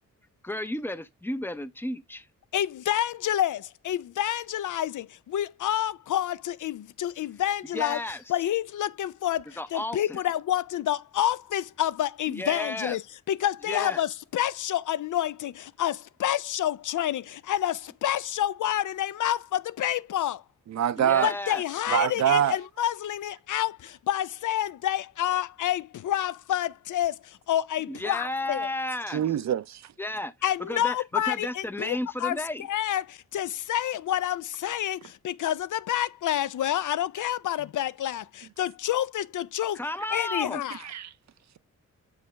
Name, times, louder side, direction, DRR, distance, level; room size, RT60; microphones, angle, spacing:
voice 1, 0.4-2.3 7.7-8.2 9.6-10.2 12.3-13.0 13.7-14.0 21.0-21.6 27.9-29.2 30.0-30.3 30.6-32.7 39.7-40.6, left 1 dB, 5° left, 0.5 m, -33 dB
voice 2, 2.5-8.0 8.3-20.4 21.2-28.7 30.4-32.4 32.7-39.8 40.1-40.8, left 12 dB, 75° left, 0.5 m, -28 dB
voice 3, 20.7-21.3 21.9-22.6 29.1-29.8 40.9-41.1, right 9 dB, 60° right, 0.5 m, -24 dB
7.4 x 4.8 x 3.2 m
wide cardioid pair, 120°, 31 cm